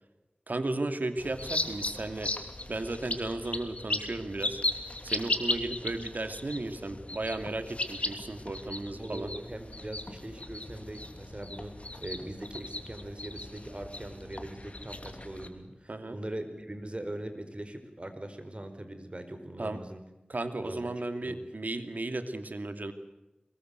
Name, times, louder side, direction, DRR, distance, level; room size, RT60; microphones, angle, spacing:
voice 1, 0.5-2.3 2.7-4.6 5.0-9.3 15.9-16.2 19.6-19.8 20.3-22.9, right 2 dB, 75° right, 9 dB, 2.5 m, -34 dB
sound 1, 1.2-15.5, left 2 dB, 45° left, 3.0 m, -37 dB
voice 2, 9.0-20.0 20.6-20.9 21.3-21.4, right 1 dB, 40° right, 8 dB, 4.6 m, -41 dB
24.0 x 21.5 x 8.2 m, 1.0 s
wide cardioid pair, 45°, 3 cm